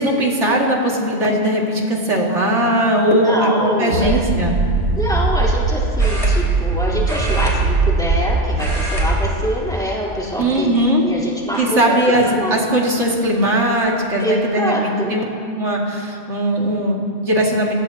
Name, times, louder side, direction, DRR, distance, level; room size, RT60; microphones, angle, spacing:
voice 1, 0.0-4.6 10.4-11.0 11.6-15.3 15.5-17.7, right 1 dB, 85° right, -2 dB, 2.7 m, -19 dB
voice 2, 3.1-4.2 5.0-10.7 11.0-11.8 12.2-12.6 14.2-15.2, equal, 5° left, -6 dB, 3.7 m, -24 dB
sound 1, 3.9-9.3, right 3 dB, 60° right, 1.3 m, -19 dB
sound 2, 4.0-4.3 6.0-6.8 7.0-8.2 8.5-9.1 9.4-9.6 10.4-11.0 11.5-11.6 13.1-13.2 13.5-13.9, equal, 30° right, 3.4 m, -30 dB
28.0 x 17.0 x 2.9 m, 2.5 s
omnidirectional pair, 1.2 m